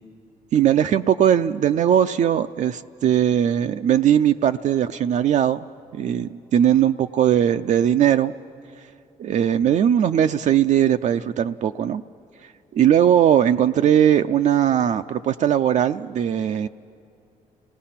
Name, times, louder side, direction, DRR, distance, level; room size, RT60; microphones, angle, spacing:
voice 1, 0.5-5.7 5.9-8.3 9.2-12.0 12.7-16.7, right 10 dB, 60° right, 8 dB, 0.5 m, -19 dB
30.0 x 18.0 x 5.8 m, 2.6 s
cardioid pair, 80°, 14 cm